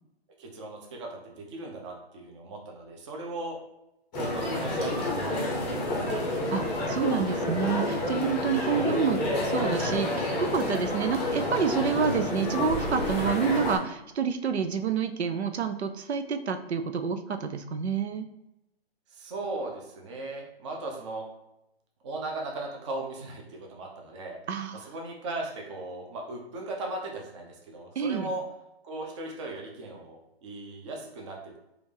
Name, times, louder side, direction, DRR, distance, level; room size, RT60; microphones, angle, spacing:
voice 1, 0.4-3.6 4.1-6.2 8.6-9.0 19.1-21.2 22.0-24.4 24.7-28.4 28.8-31.6, right 2 dB, 30° right, 0 dB, 0.7 m, -38 dB
sound 1, 4.1-13.8, left 1 dB, 15° left, 0.6 m, -29 dB
voice 2, 6.5-18.3 24.5-24.9 28.0-28.3, right 6 dB, 85° right, 7 dB, 0.6 m, -28 dB
4.9 x 2.5 x 3.3 m, 0.88 s
hypercardioid pair, 150°, 32 cm